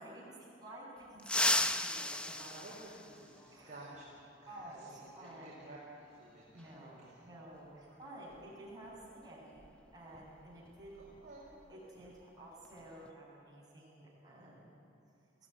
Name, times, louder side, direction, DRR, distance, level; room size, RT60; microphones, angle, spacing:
voice 1, 0.0-2.5 3.5-3.7 4.5-5.5 6.5-9.0 9.2-9.6 9.9-10.9 11.7-14.7, right 1 dB, 20° right, -6 dB, 7.5 m, -52 dB
sound 1, 1.2-3.6 5.3-5.4 6.6-6.7 8.3-8.5 8.8-9.0 9.5-11.7 12.0-12.2 12.6-13.1, left 1 dB, 5° left, 0.6 m, -35 dB
voice 2, 2.3-7.2 7.9-8.5 10.9-11.5, right 1 dB, 40° right, -7 dB, 4.9 m, -54 dB
21.5 x 16.5 x 9.7 m, 2.6 s
head